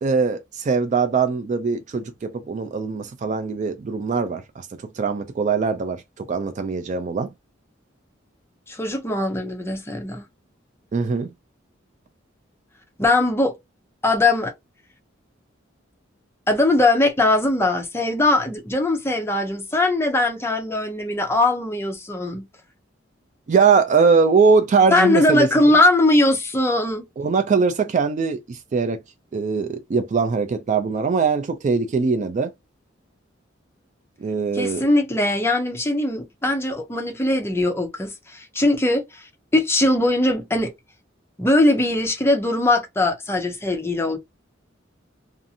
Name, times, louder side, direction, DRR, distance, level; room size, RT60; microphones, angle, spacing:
voice 1, 0.0-7.3 10.9-11.3 23.5-25.5 27.2-29.0 29.3-32.5 34.2-34.9, right 5 dB, 40° right, 0.3 m, -21 dB
voice 2, 8.7-10.2 13.0-13.5 14.0-14.5 16.5-22.4 24.9-27.1 34.5-39.2 39.5-40.7 41.4-44.2, left 2 dB, 15° left, 0.5 m, -20 dB
2.5 x 2.4 x 2.6 m
head